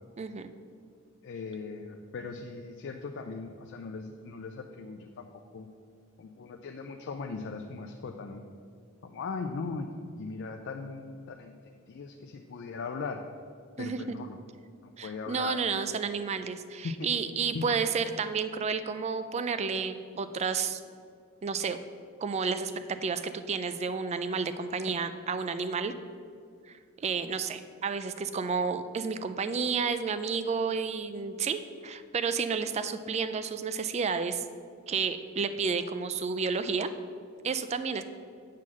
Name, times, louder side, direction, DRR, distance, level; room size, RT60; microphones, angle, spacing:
voice 1, 0.2-0.5 13.8-14.0 15.0-20.8 21.4-21.8 22.2-25.9 27.0-34.4 34.9-36.9 37.4-38.0, right 5 dB, 30° right, 11 dB, 0.3 m, -31 dB
voice 2, 1.2-5.3 5.5-5.7 6.2-8.4 9.0-9.9 10.2-11.6 11.9-13.2 13.8-14.4 14.8-15.6 16.8-16.9 17.5-17.6, left 4 dB, 55° left, 4 dB, 0.4 m, -39 dB
7.5 x 3.8 x 6.2 m, 2.2 s
head